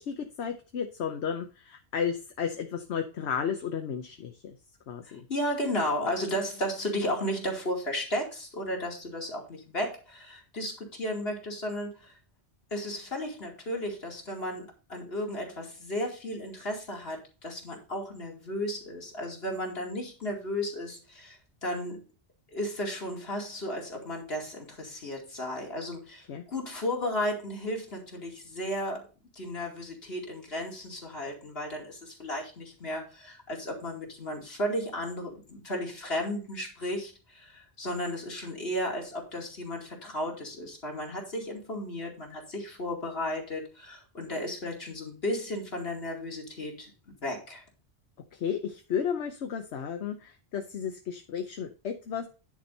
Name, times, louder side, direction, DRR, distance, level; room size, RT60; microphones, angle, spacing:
voice 1, 0.0-4.5 4.9-5.2 26.3-26.4 48.3-52.3, left 7 dB, 85° left, 5 dB, 1.1 m, -33 dB
voice 2, 5.1-12.1 12.7-22.0 22.5-29.1 29.4-47.6, left 1 dB, 65° left, 0 dB, 2.8 m, -34 dB
10.0 x 4.4 x 5.3 m, 0.33 s
omnidirectional pair, 1.1 m